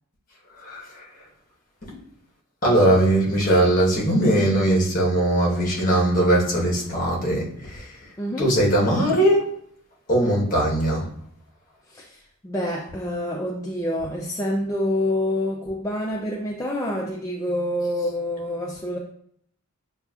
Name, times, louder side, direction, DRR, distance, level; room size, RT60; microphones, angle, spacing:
voice 1, 2.6-7.5 8.4-9.4 10.1-11.0, right 1 dB, 40° left, -3 dB, 1.1 m, -20 dB
voice 2, 8.2-8.6 11.9-12.2 12.4-19.0, left 1 dB, 15° left, -3 dB, 0.3 m, -27 dB
6.7 x 2.4 x 2.3 m, 0.64 s
head